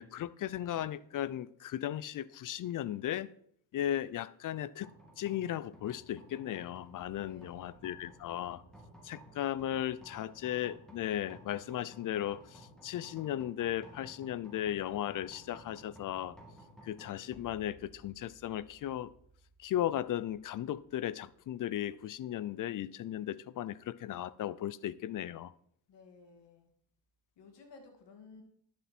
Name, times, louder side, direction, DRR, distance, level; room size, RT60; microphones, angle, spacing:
voice 1, 0.0-3.3 3.7-4.9 5.2-8.6 9.0-16.4 16.8-19.1 19.6-25.5, left 12 dB, 45° left, 0.5 m, -36 dB
sound 1, 4.8-22.0, right 1 dB, ahead, 2.4 m, -57 dB
voice 2, 7.3-8.0 25.9-26.7 27.4-28.4, left 4 dB, 65° left, 2.4 m, -56 dB
11.0 x 6.9 x 4.4 m
cardioid pair, 90°, 46 cm